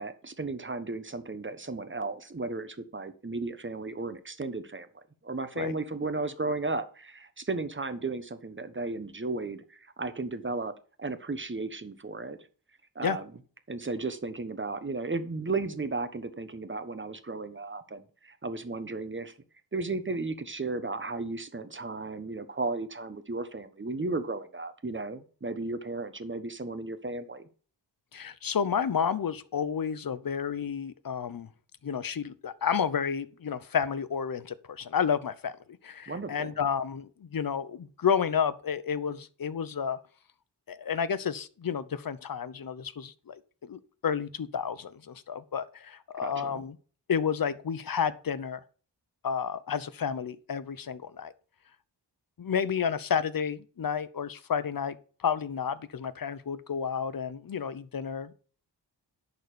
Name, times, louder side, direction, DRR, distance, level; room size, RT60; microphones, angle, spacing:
voice 1, 0.0-4.9 5.2-10.7 11.0-12.4 12.9-13.3 13.7-19.3 19.7-27.5 36.1-36.5 46.2-46.6, right 3 dB, 25° right, 1.2 m, -34 dB
voice 2, 28.1-31.5 31.8-35.5 35.8-40.0 40.7-46.7 47.1-48.6 49.2-51.3 52.4-58.3, left 7 dB, 50° left, 0.8 m, -31 dB
11.0 x 4.1 x 6.8 m
wide cardioid pair, 70°, 43 cm